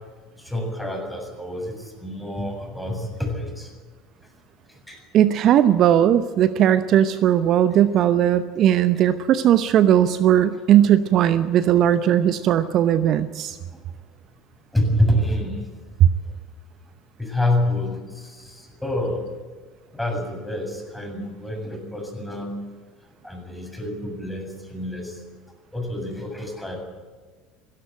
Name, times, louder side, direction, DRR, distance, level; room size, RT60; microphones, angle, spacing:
voice 1, 0.4-3.7 4.7-5.0 7.7-7.8 13.7-13.8 14.7-15.7 17.2-19.2 19.9-22.6 23.2-25.2 25.7-26.8, left 1 dB, 5° left, 2 dB, 7.4 m, -27 dB
voice 2, 5.1-13.6 16.0-16.1, right 10 dB, 50° right, 13 dB, 0.8 m, -18 dB
17.5 x 17.0 x 9.1 m, 1.5 s
hypercardioid pair, 70°, 0 cm